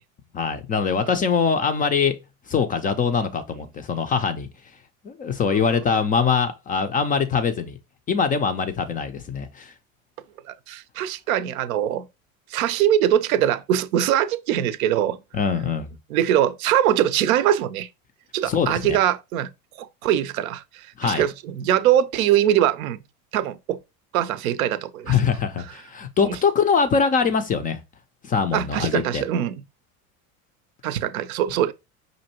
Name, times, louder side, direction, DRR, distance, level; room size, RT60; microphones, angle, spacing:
voice 1, 0.3-2.2 2.5-4.5 5.0-7.8 8.1-9.7 15.3-15.9 18.5-19.0 21.0-21.3 25.1-27.8 28.2-29.2, left 6 dB, 20° left, 0.3 m, -23 dB
voice 2, 10.5-12.1 12.5-15.2 16.1-17.9 18.3-19.5 19.8-23.0 23.3-23.8 24.1-25.2 26.2-26.4 28.5-29.6 30.8-31.7, right 11 dB, 75° right, 0.5 m, -22 dB
5.3 x 2.6 x 2.8 m
hypercardioid pair, 80°, 43 cm